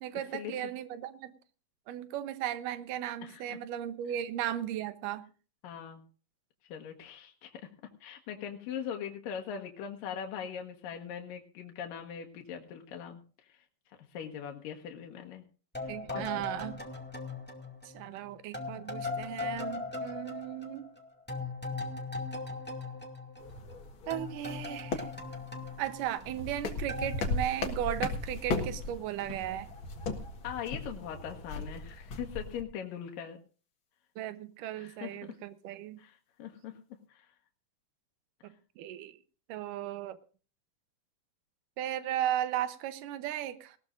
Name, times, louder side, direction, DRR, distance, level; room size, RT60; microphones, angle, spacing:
voice 1, 0.0-1.3 1.9-5.2 15.9-16.8 17.8-20.9 24.1-25.1 25.8-29.7 34.2-36.0 38.4-39.2 39.5-40.2 41.8-43.8, right 11 dB, 80° right, 12 dB, 2.5 m, -36 dB
voice 2, 3.2-3.6 5.6-6.0 6.7-7.6 8.0-13.2 13.5-13.6 14.1-15.4 15.8-16.2 16.5-16.6 30.4-33.4 34.7-35.1 36.0-36.8 37.1-37.3, left 8 dB, 80° left, 2 dB, 3.0 m, -41 dB
sound 1, 15.7-18.2 18.5-23.8 24.1-26.6 26.9-27.2, left 3 dB, 5° left, 1.4 m, -39 dB
sound 2, 23.4-32.6, left 3 dB, 45° left, 2.0 m, -37 dB
19.5 x 16.5 x 2.6 m, 0.38 s
omnidirectional pair, 3.9 m